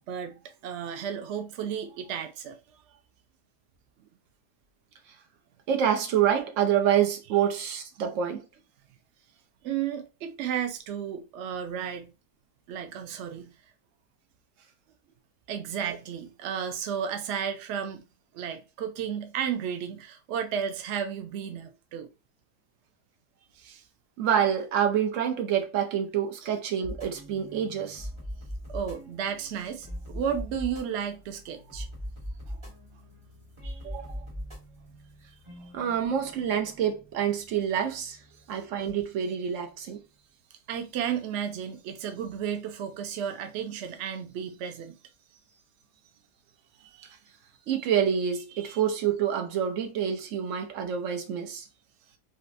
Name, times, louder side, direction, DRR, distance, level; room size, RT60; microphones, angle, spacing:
voice 1, 0.0-2.6 2.9-3.0 9.6-12.1 12.7-13.6 15.5-18.0 18.3-22.1 23.6-23.8 26.4-26.5 28.7-31.9 32.5-32.6 33.6-33.8 35.6-35.7 40.7-45.0 46.8-47.2 48.6-48.7, right 8 dB, 85° right, 0.6 m, -33 dB
voice 2, 5.7-8.4 24.2-28.1 33.8-34.2 35.7-38.2 38.5-40.0 47.7-51.7, right 9 dB, 60° right, 0.9 m, -27 dB
sound 1, 26.8-39.4, equal, 20° right, 1.1 m, -42 dB
3.9 x 2.1 x 2.5 m
omnidirectional pair, 1.7 m